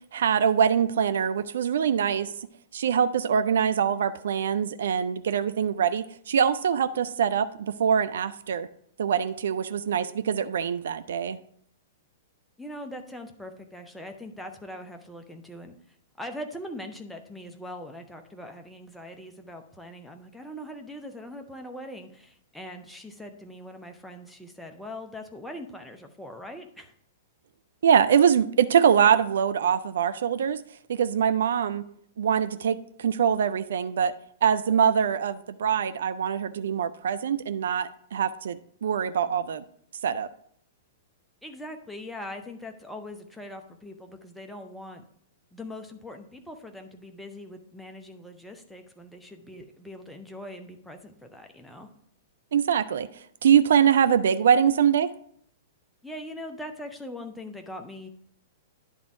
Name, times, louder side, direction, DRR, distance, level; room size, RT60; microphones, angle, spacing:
voice 1, 0.1-2.3 2.7-8.7 9.0-11.4 27.8-30.6 30.9-31.8 32.2-34.1 34.4-39.6 40.0-40.3 52.5-53.1 53.4-55.1, right 8 dB, 60° right, 12 dB, 0.3 m, -23 dB
voice 2, 12.6-15.8 16.2-26.9 41.4-45.0 45.5-51.9 56.0-58.1, left 1 dB, 5° left, 3 dB, 0.8 m, -41 dB
10.5 x 3.5 x 4.6 m, 0.65 s
figure-of-eight pair, 105°, 0 cm